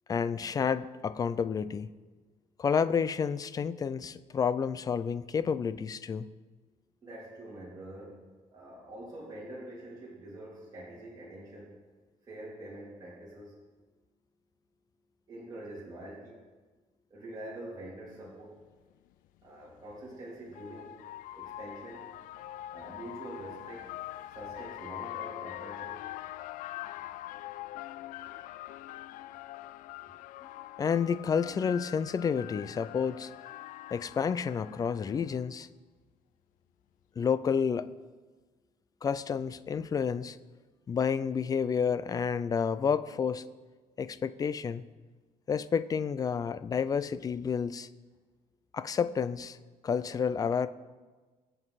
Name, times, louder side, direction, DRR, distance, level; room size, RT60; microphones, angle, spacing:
voice 1, 0.1-1.9 2.6-6.3 30.8-33.3 33.9-35.7 37.2-37.9 39.0-40.4 40.9-43.4 44.0-44.8 45.5-47.9 48.7-49.6 49.8-50.7, left 6 dB, 25° left, 14 dB, 0.5 m, -30 dB
voice 2, 7.0-8.2 8.5-11.8 12.2-13.6 15.3-16.4 17.1-18.6 19.4-21.0 21.3-22.1 22.7-23.9 24.3-26.0, right 1 dB, 25° right, -7 dB, 3.2 m, -45 dB
sound 1, 18.4-18.5 19.9-35.5, left 14 dB, 90° left, 0.4 m, -43 dB
23.5 x 7.9 x 4.1 m, 1.3 s
cardioid pair, 155°, 14 cm